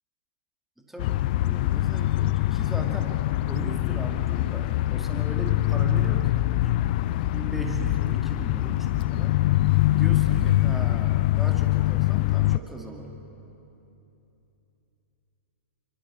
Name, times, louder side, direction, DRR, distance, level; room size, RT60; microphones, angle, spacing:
voice 1, 0.8-6.9 7.3-9.4 9.9-13.2, right 2 dB, 5° right, 1 dB, 2.0 m, -38 dB
sound 1, 1.0-12.6, left 16 dB, 40° left, 0.4 m, -24 dB
29.0 x 24.0 x 4.8 m, 2.9 s
figure-of-eight pair, 110°, 7 cm